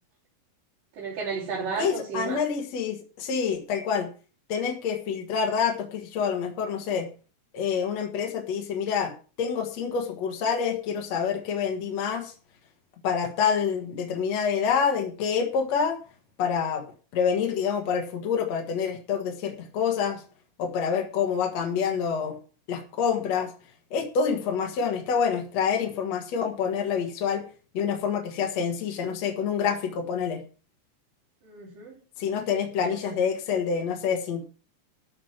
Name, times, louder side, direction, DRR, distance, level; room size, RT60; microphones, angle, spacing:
voice 1, 1.0-2.4 31.4-32.0 32.7-33.2, right 5 dB, 80° right, 5.2 m, -33 dB
voice 2, 1.8-4.1 4.5-7.1 7.5-9.1 9.4-12.3 13.0-16.0 16.4-16.8 17.1-20.2 20.6-22.4 22.7-23.5 23.9-27.4 27.7-30.4 32.2-34.4, left 6 dB, 55° left, 2.7 m, -27 dB
14.0 x 5.2 x 7.3 m
omnidirectional pair, 3.9 m